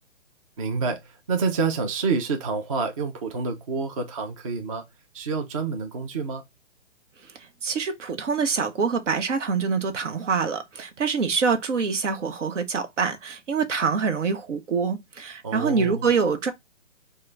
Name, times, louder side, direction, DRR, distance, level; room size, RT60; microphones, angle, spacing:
voice 1, 0.6-4.8 5.1-6.4 15.4-16.1, right 4 dB, 30° right, 0.4 m, -28 dB
voice 2, 7.6-16.5, right 5 dB, 80° right, 1.0 m, -25 dB
3.7 x 2.2 x 3.3 m
hypercardioid pair, 155°, 36 cm